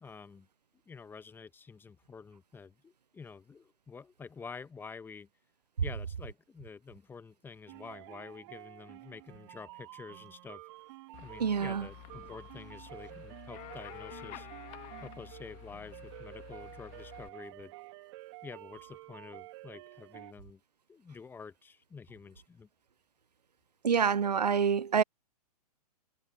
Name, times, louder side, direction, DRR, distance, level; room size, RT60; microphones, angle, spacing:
voice 1, 0.0-0.5 0.9-5.3 5.8-10.6 11.2-14.5 15.0-17.7 18.4-20.6 20.9-22.7, left 5 dB, 10° left, 1.2 m, -48 dB
sound 1, 7.7-20.3, right 20 dB, 45° right, 1.6 m, -50 dB
sound 2, 11.1-17.3, left 24 dB, 35° left, 2.1 m, -50 dB
voice 2, 11.4-11.9 23.8-25.0, right 7 dB, 85° right, 0.5 m, -27 dB
figure-of-eight pair, 115°, 20 cm